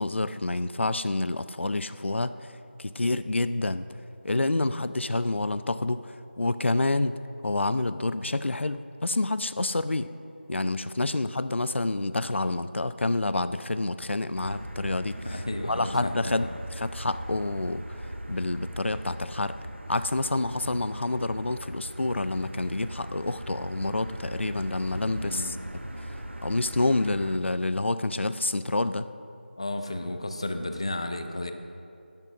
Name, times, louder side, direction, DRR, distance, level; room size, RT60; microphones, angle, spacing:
voice 1, 0.0-2.5 2.8-3.9 4.2-10.1 10.5-19.6 19.9-25.6 26.0-29.1, left 2 dB, 90° left, 13 dB, 0.5 m, -28 dB
Motor vehicle (road), 14.4-27.4, right 1 dB, 90° right, 1.2 m, -39 dB
voice 2, 15.2-16.6 25.2-25.5 29.6-31.5, left 1 dB, 30° left, 7 dB, 0.6 m, -33 dB
10.5 x 8.5 x 6.2 m, 2.5 s
figure-of-eight pair, 180°, 6 cm